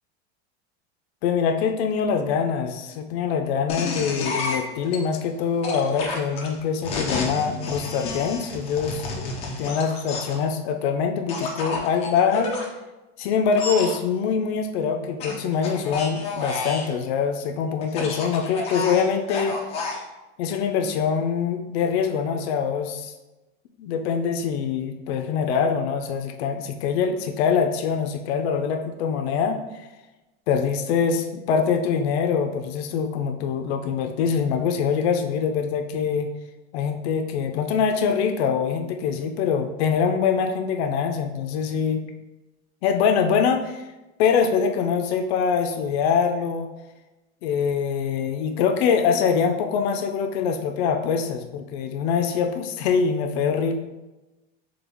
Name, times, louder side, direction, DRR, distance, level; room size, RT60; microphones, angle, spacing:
voice 1, 1.2-12.5 13.2-19.6 20.4-23.1 23.8-29.6 30.5-36.3 36.7-42.0 42.8-43.9 44.2-46.7 47.4-53.7, left 6 dB, 70° left, 6 dB, 0.5 m, -24 dB
sound 1, 3.7-5.0 5.6-10.4 11.3-12.7 13.5-13.9 15.2-16.9 17.8-20.0, left 3 dB, 20° left, 0.4 m, -30 dB
3.8 x 3.4 x 3.4 m, 1.1 s
supercardioid pair, 170°, 33 cm